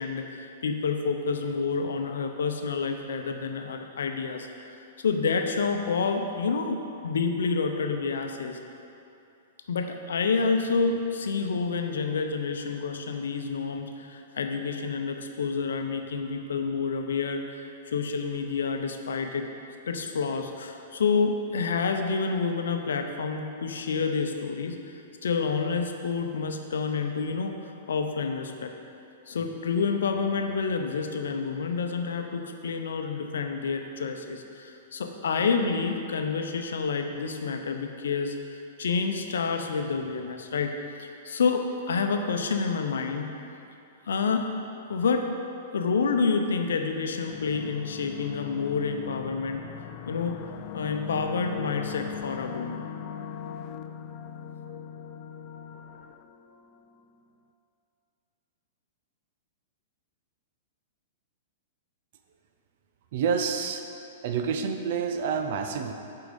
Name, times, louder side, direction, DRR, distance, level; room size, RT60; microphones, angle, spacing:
voice 1, 0.0-8.6 9.7-19.4 19.9-24.9 25.2-27.6 27.9-28.7 29.3-40.7 41.0-43.3 44.1-44.5 44.9-45.3 45.7-49.6 50.1-50.4 50.7-52.8, left 5 dB, 80° left, 5 dB, 0.7 m, -28 dB
sound 1, 47.3-57.0, left 8 dB, 45° left, 0.4 m, -40 dB
voice 2, 63.1-63.8 64.2-65.9, right 6 dB, 60° right, 6 dB, 0.6 m, -28 dB
7.9 x 4.7 x 5.3 m, 2.7 s
hypercardioid pair, 115°, 0 cm